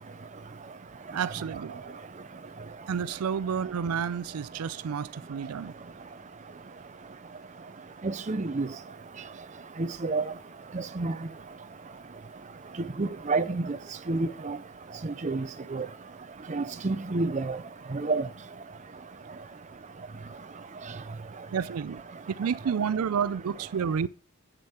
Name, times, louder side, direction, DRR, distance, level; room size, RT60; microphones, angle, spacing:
voice 1, 1.1-2.0 2.9-5.7 21.5-22.0 22.4-24.1, right 7 dB, 85° right, 0.4 m, -30 dB
voice 2, 8.0-8.7 9.8-10.2 10.7-11.1 13.0-13.8 14.1-14.6 15.2-15.4 15.7-15.8 16.5-17.6 18.0-18.2, right 3 dB, 35° right, 0.6 m, -28 dB
8.2 x 7.0 x 4.3 m
head